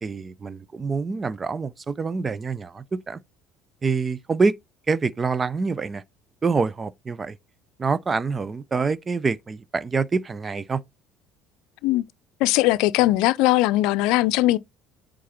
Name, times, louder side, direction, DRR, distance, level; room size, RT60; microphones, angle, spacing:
voice 1, 0.0-3.2 3.8-4.5 4.9-6.0 6.4-7.4 7.8-10.8, right 4 dB, 30° right, 0.7 m, -26 dB
voice 2, 12.4-14.6, left 17 dB, 70° left, 0.5 m, -20 dB
8.4 x 3.8 x 4.4 m
hypercardioid pair, 70°, 0 cm